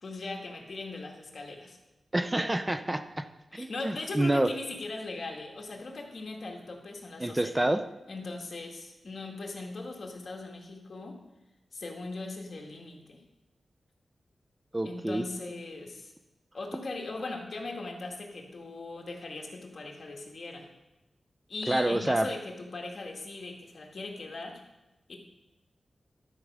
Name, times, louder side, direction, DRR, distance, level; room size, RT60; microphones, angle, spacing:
voice 1, 0.0-1.8 3.5-7.5 8.1-11.2 11.7-13.2 14.8-16.1 16.5-20.7 21.5-24.6 25.1-25.2, left 3 dB, 55° left, 1 dB, 1.9 m, -39 dB
voice 2, 2.1-3.3 3.5-4.5 7.2-7.8 14.7-15.2 21.7-22.3, right 1 dB, 20° right, 9 dB, 0.5 m, -28 dB
12.0 x 5.2 x 6.1 m, 0.98 s
wide cardioid pair, 80°, 0 cm